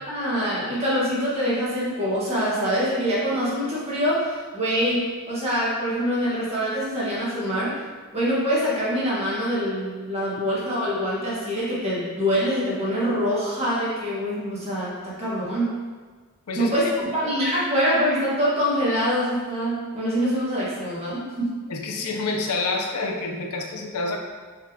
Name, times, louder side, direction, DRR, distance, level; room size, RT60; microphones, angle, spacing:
voice 1, 0.1-7.8 8.1-15.7 16.6-21.5, equal, 30° right, -7 dB, 1.3 m, -24 dB
voice 2, 21.7-24.2, left 3 dB, 85° left, 2 dB, 0.5 m, -28 dB
4.1 x 3.6 x 2.7 m, 1.4 s
head